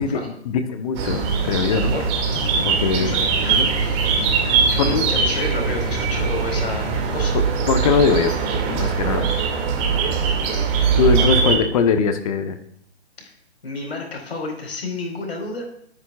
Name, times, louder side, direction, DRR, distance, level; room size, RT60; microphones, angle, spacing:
voice 1, 0.4-1.9 2.6-3.1 3.5-3.7 4.4-5.1 7.3-8.3 8.7-9.3 11.0-12.6, left 6 dB, 35° left, 7 dB, 1.1 m, -21 dB
sound 1, 0.9-11.6, right 6 dB, 25° right, 2.3 m, -21 dB
sound 2, 2.3-7.3, left 6 dB, 15° left, 0.5 m, -34 dB
voice 2, 3.0-3.7 4.1-4.2 4.7-6.9 7.1-7.4 11.2-11.3 13.2-13.3 13.6-15.7, left 2 dB, 65° left, 1 dB, 4.6 m, -30 dB
21.5 x 9.8 x 2.4 m, 0.69 s
figure-of-eight pair, 140°, 33 cm